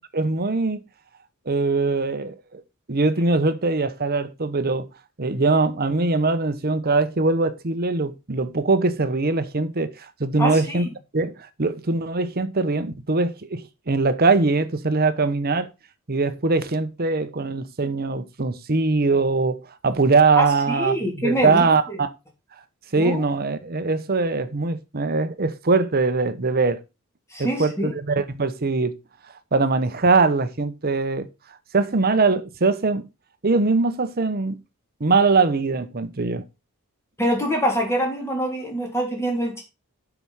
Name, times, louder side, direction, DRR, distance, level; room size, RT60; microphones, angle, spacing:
voice 1, 0.1-0.8 1.5-2.6 2.9-4.9 5.2-9.9 10.2-10.9 11.1-13.6 13.9-15.7 16.1-22.1 22.9-26.8 27.4-29.0 29.5-31.3 31.7-33.0 33.4-34.6 35.0-36.4, right 3 dB, 45° right, 0.9 m, -22 dB
voice 2, 10.4-10.8 20.4-22.0 22.9-23.2 27.3-27.9 37.2-39.6, equal, 10° left, 3.3 m, -25 dB
7.9 x 6.1 x 5.6 m
head